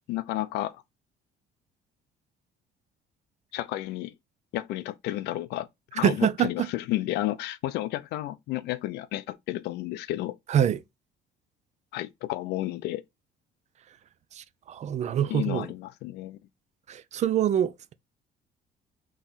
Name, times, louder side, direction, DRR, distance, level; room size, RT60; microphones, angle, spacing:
voice 1, 0.1-0.8 3.5-4.1 4.5-5.7 5.9-10.4 11.9-13.0 15.3-16.4, left 15 dB, 80° left, 0.5 m, -31 dB
voice 2, 6.0-6.7 10.5-10.8 14.3-15.7 16.9-17.7, right 10 dB, 45° right, 0.4 m, -25 dB
3.8 x 3.0 x 3.9 m
cardioid pair, 110°, 17 cm